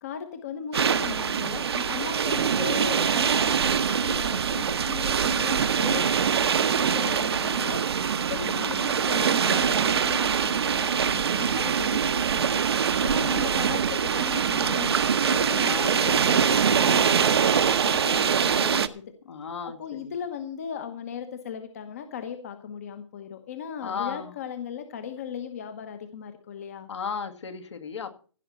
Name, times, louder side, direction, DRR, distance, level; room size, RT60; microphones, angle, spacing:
voice 1, 0.0-7.8 8.3-12.6 13.0-19.0 19.6-26.9, left 8 dB, 30° left, 8 dB, 1.0 m, -37 dB
sound 1, 0.7-18.9, right 7 dB, 55° right, 0.9 m, -24 dB
voice 2, 8.4-8.9 11.2-11.8 13.2-13.7 15.6-15.9 19.3-20.1 23.8-24.3 26.9-28.2, left 6 dB, 65° left, 6 dB, 2.2 m, -36 dB
16.0 x 5.8 x 7.7 m, 0.40 s
hypercardioid pair, 175°, 16 cm